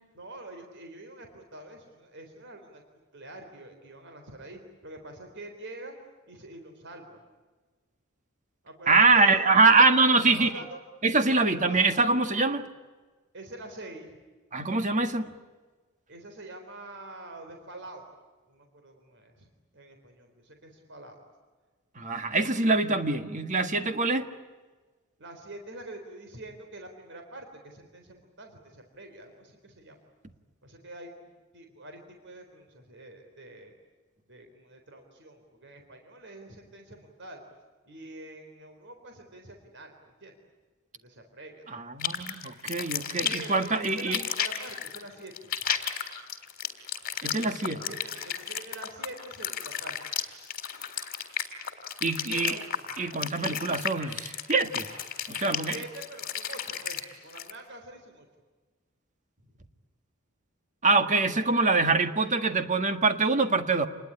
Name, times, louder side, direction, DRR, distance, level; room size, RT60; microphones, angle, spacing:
voice 1, 0.1-2.8 3.1-5.9 6.3-7.2 8.6-9.5 10.3-10.8 11.3-11.9 13.3-14.1 16.1-18.1 18.5-19.5 19.7-21.2 25.2-30.0 30.6-33.7 34.3-37.4 37.9-40.4 40.9-42.1 43.2-45.5 47.8-50.0 52.3-52.7 55.4-58.2 59.4-59.6, right 2 dB, 55° right, 3.9 m, -45 dB
voice 2, 8.9-10.5 11.0-12.7 14.5-15.3 21.9-24.3 41.7-44.2 47.2-47.8 52.0-52.6 53.0-54.9 55.3-55.8 60.8-63.9, right 3 dB, 35° right, 1.8 m, -24 dB
sound 1, 42.0-57.5, left 8 dB, 45° left, 3.5 m, -33 dB
28.5 x 21.0 x 9.8 m
head